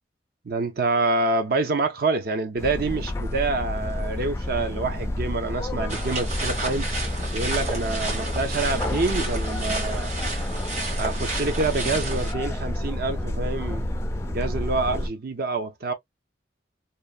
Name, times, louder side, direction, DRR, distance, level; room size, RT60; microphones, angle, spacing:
voice 1, 0.4-6.9 7.3-10.1 11.0-13.9 14.3-15.9, right 3 dB, 60° right, 0.6 m, -27 dB
sound 1, 2.6-15.1, left 1 dB, 15° left, 0.3 m, -29 dB
sound 2, 5.9-12.3, right 3 dB, 40° right, 1.2 m, -32 dB
2.9 x 2.1 x 2.3 m
head